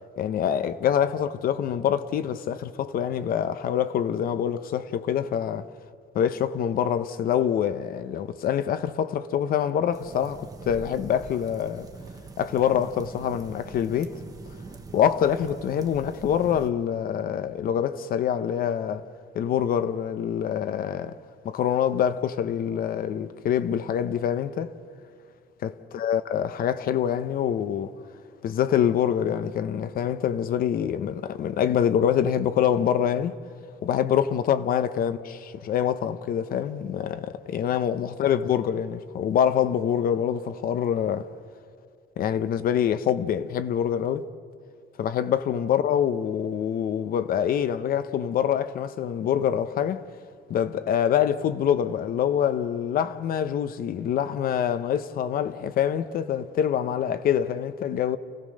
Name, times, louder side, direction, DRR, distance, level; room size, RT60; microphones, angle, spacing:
voice 1, 0.2-5.7 6.1-11.9 12.4-14.2 14.9-19.1 19.3-21.1 21.4-24.7 25.6-28.0 28.4-33.4 33.8-41.3 42.2-44.3 45.0-50.1 50.5-58.2, left 9 dB, 55° left, 0.9 m, -25 dB
sound 1, 9.9-16.7, right 4 dB, 20° right, 1.1 m, -43 dB
30.0 x 16.0 x 6.5 m
cardioid pair, 140°, 18 cm